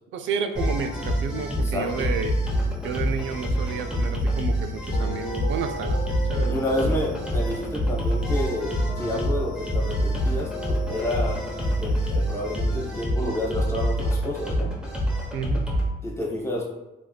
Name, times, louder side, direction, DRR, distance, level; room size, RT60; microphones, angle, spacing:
voice 1, 0.1-2.4 2.8-6.9 9.0-9.3 15.3-15.6, right 6 dB, 75° right, 7 dB, 0.4 m, -31 dB
sound 1, 0.5-15.9, equal, 5° right, 0.8 m, -26 dB
sound 2, 2.4-11.8, left 2 dB, 60° left, 0.6 m, -39 dB
voice 2, 6.5-10.5 10.9-11.4 11.8-14.7 16.0-16.7, left 1 dB, 15° left, -4 dB, 1.1 m, -29 dB
3.2 x 3.2 x 2.2 m, 1.0 s
cardioid pair, 90°, 20 cm